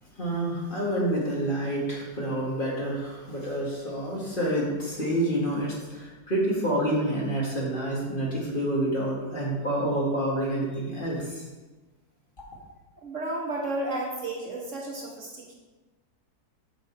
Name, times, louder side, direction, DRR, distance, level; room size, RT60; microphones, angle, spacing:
voice 1, 0.2-11.4, right 1 dB, 35° left, -4 dB, 2.0 m, -28 dB
voice 2, 13.0-15.5, right 2 dB, 50° right, -2 dB, 1.5 m, -32 dB
7.7 x 6.1 x 4.6 m, 1.2 s
omnidirectional pair, 1.7 m